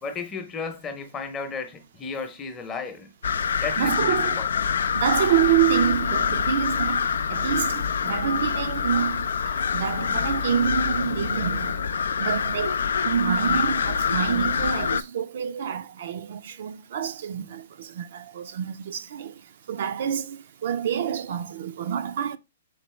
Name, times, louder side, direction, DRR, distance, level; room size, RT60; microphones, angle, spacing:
voice 1, 0.0-3.1 3.6-4.5, left 4 dB, 20° left, 0.8 m, -34 dB
crows and owl, 3.2-15.0, left 6 dB, 80° left, 0.4 m, -25 dB
voice 2, 3.5-4.4 4.9-11.9 12.2-22.4, right 9 dB, 60° right, 0.5 m, -27 dB
4.2 x 4.0 x 3.1 m
hypercardioid pair, 145°, 0 cm